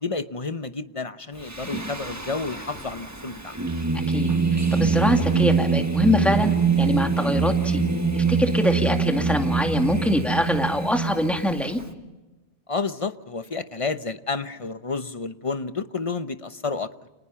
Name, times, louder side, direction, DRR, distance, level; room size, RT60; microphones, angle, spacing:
voice 1, 0.0-3.5 12.7-16.9, left 4 dB, 30° left, 11 dB, 0.9 m, -30 dB
Singing, 1.4-11.8, right 4 dB, 15° right, 1.4 m, -24 dB
voice 2, 4.7-7.8 8.1-11.8, left 1 dB, ahead, 3 dB, 2.2 m, -24 dB
29.5 x 27.0 x 5.8 m, 1.1 s
omnidirectional pair, 1.1 m